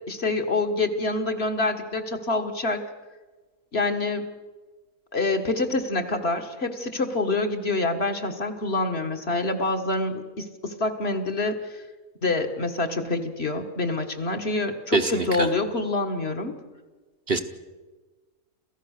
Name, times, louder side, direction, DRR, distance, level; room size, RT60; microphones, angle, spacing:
voice 1, 0.1-2.8 3.7-4.3 5.1-11.8 12.2-16.5, left 2 dB, 45° left, 5 dB, 1.8 m, -26 dB
voice 2, 14.9-15.5 17.3-17.4, right 3 dB, 45° right, 6 dB, 1.1 m, -24 dB
28.0 x 15.5 x 6.6 m, 1.3 s
omnidirectional pair, 1.5 m